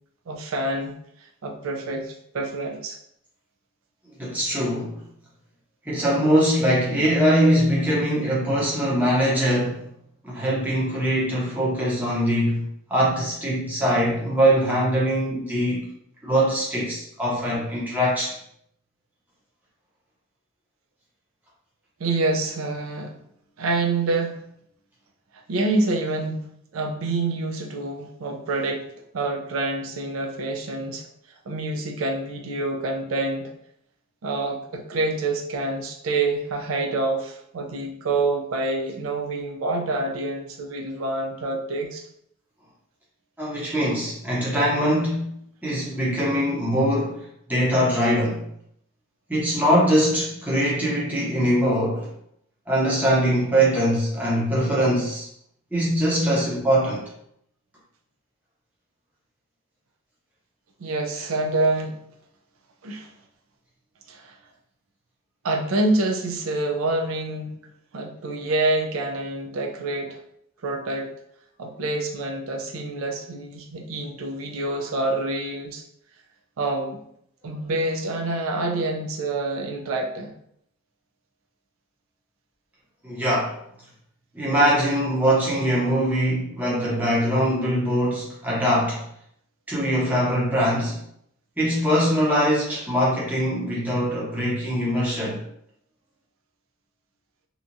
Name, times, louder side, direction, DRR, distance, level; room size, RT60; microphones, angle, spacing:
voice 1, 0.3-0.9 1.2-3.0 22.0-23.2 23.6-24.4 25.5-26.5 26.7-28.9 29.1-31.1 31.5-33.5 34.2-42.0 60.8-62.0 62.8-63.1 64.1-64.4 65.4-67.6 67.9-70.2 70.6-71.1 71.6-75.8 76.6-77.0 77.4-80.3, right 2 dB, 85° right, 3 dB, 0.4 m, -27 dB
voice 2, 4.2-4.9 5.9-9.8 10.2-15.9 16.2-18.4 43.4-45.3 45.6-48.4 49.3-52.1 52.7-55.3 55.7-57.0 83.0-83.5 84.3-89.0 89.7-91.0 91.6-95.4, equal, 10° right, -6 dB, 0.7 m, -22 dB
2.8 x 2.3 x 2.6 m, 0.71 s
head